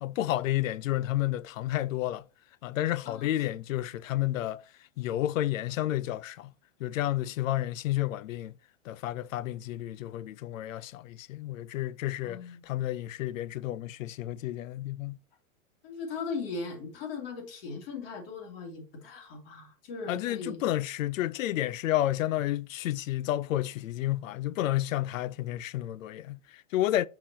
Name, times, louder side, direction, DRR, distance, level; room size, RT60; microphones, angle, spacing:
voice 1, 0.0-2.2 2.6-4.6 5.0-6.5 6.8-8.5 8.9-15.2 20.1-27.1, left 14 dB, 70° left, 0.5 m, -31 dB
voice 2, 12.2-12.6 15.8-20.6, left 4 dB, 45° left, 2.2 m, -38 dB
6.4 x 5.9 x 2.8 m
supercardioid pair, 170°, 41 cm